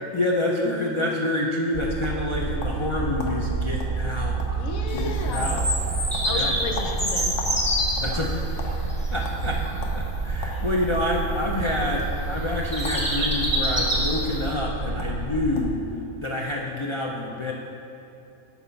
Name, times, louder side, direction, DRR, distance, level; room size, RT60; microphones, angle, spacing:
voice 1, 0.1-4.4 4.9-5.7 6.3-6.5 8.0-8.7 9.1-15.8 16.2-17.5, left 1 dB, 45° left, -2 dB, 0.4 m, -27 dB
sound 1, 1.7-15.7, right 4 dB, 45° right, 1.0 m, -29 dB
sound 2, 2.0-2.9 3.2-3.4 3.8-4.0 4.2-4.7 5.0-5.3 5.6-5.8 6.1-7.6 7.9-8.7 9.2-9.4 9.8-10.0 10.4-11.1 11.9-12.1 12.8-13.1 13.3-13.9 14.7-14.8 15.0-15.2 15.5-15.8, left 4 dB, 65° left, 1.2 m, -37 dB
voice 2, 4.6-5.6 6.3-7.4, left 5 dB, 90° left, 4 dB, 1.2 m, -33 dB
Bird vocalization bird call bird song, 4.9-14.5, equal, 5° left, 1.3 m, -29 dB
9.3 x 4.2 x 5.7 m, 2.8 s
omnidirectional pair, 1.4 m